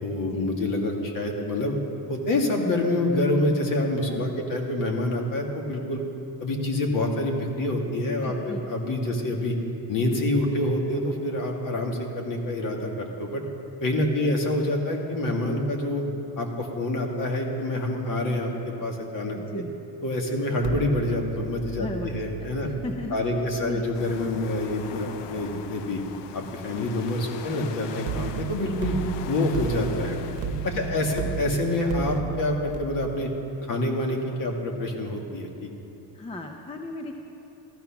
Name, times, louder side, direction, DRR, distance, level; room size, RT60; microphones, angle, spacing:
voice 1, 0.0-1.8 2.1-6.0 6.4-9.6 9.9-13.4 13.8-16.0 16.4-19.6 20.0-22.7 23.1-26.0 26.3-29.0 29.3-30.2 30.6-33.3 33.7-35.7, left 1 dB, 50° left, 1 dB, 1.9 m, -27 dB
voice 2, 4.1-4.5 8.2-8.6 9.1-9.3 19.3-19.7 21.8-23.3 23.6-23.8 30.7-31.2 36.1-37.2, left 1 dB, 15° left, 4 dB, 0.5 m, -37 dB
sound 1, 20.6-25.7 28.1-32.8, right 7 dB, 75° right, 1.0 m, -35 dB
sound 2, 23.9-32.2, left 9 dB, 75° left, 0.7 m, -41 dB
14.0 x 13.5 x 5.9 m, 3.0 s
cardioid pair, 165°, 43 cm